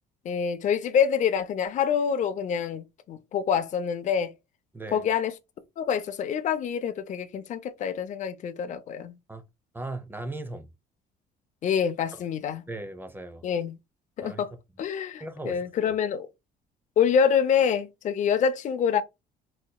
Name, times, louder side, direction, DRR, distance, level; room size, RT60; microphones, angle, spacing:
voice 1, 0.2-4.3 4.9-5.3 5.8-9.2 11.6-12.6 13.4-13.8 14.2-14.5 14.8-16.3 17.0-19.0, left 7 dB, 45° left, 0.5 m, -26 dB
voice 2, 4.7-5.1 9.3-9.4 9.7-10.7 12.7-13.4 14.2-14.4 15.2-15.9, right 2 dB, 10° right, 0.6 m, -37 dB
4.2 x 2.7 x 2.2 m
cardioid pair, 110°, 17 cm